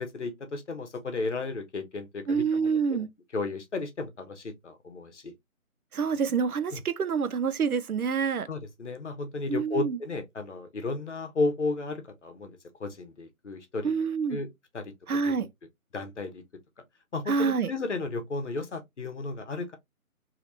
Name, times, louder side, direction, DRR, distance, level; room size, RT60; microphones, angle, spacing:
voice 1, 0.0-3.0 3.3-5.3 8.5-13.9 14.3-14.9 15.2-15.3 15.9-16.4 17.1-19.8, left 3 dB, 55° left, 0.9 m, -34 dB
voice 2, 2.3-3.1 5.9-8.5 9.5-10.0 13.8-14.4 15.1-15.5 17.3-17.7, right 5 dB, 80° right, 0.6 m, -27 dB
3.2 x 2.9 x 2.6 m
figure-of-eight pair, 160°, 44 cm